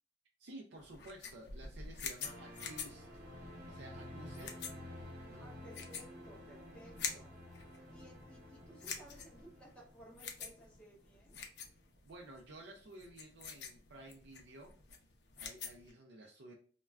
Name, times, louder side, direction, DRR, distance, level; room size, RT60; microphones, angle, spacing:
voice 1, 0.4-3.1 3.3-4.5 5.3-5.5 12.0-14.7 15.4-16.5, right 1 dB, 70° right, 1 dB, 0.4 m, -53 dB
sound 1, 0.8-15.9, left 6 dB, 65° left, 0.5 m, -47 dB
sound 2, 2.2-11.4 11.6-11.8, left 1 dB, 55° right, 0.8 m, -52 dB
voice 2, 5.4-7.4 7.9-11.4, right 1 dB, 5° left, -3 dB, 0.5 m, -58 dB
2.3 x 2.2 x 3.2 m, 0.43 s
head